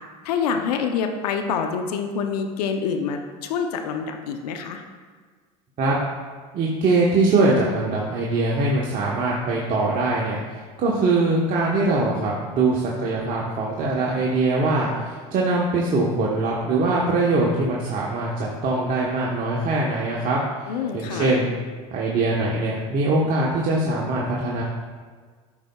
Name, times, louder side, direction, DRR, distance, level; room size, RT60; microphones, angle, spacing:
voice 1, 0.2-4.8 20.7-21.3, left 6 dB, 85° left, 5 dB, 0.6 m, -26 dB
voice 2, 6.5-20.4 20.7-21.5 21.9-24.6, right 2 dB, 45° right, -4 dB, 1.0 m, -22 dB
12.0 x 5.2 x 2.3 m, 1.5 s
supercardioid pair, 95°, 20 cm